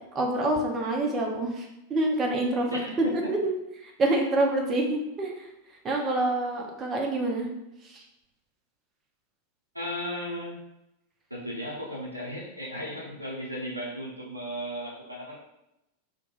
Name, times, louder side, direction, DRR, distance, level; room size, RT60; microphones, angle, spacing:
voice 1, 0.1-2.7 3.1-3.5 3.8-5.5 5.8-7.5 7.8-8.0, right 2 dB, 25° right, 1 dB, 0.5 m, -27 dB
voice 2, 2.7-3.4 9.7-10.6 11.3-15.4, equal, 85° right, -3 dB, 0.6 m, -35 dB
2.2 x 2.2 x 3.0 m, 0.89 s
figure-of-eight pair, 90°, 0 cm